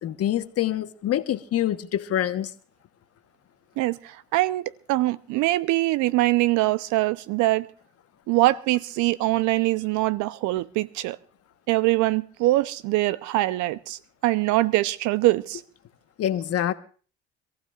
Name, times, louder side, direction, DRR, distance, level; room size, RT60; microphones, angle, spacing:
voice 1, 0.0-2.5 16.2-16.7, left 11 dB, 50° left, 1.3 m, -26 dB
voice 2, 3.8-7.7 8.3-11.2 11.7-15.6, right 18 dB, 65° right, 0.8 m, -23 dB
26.0 x 15.5 x 2.5 m
hypercardioid pair, 75°, 32 cm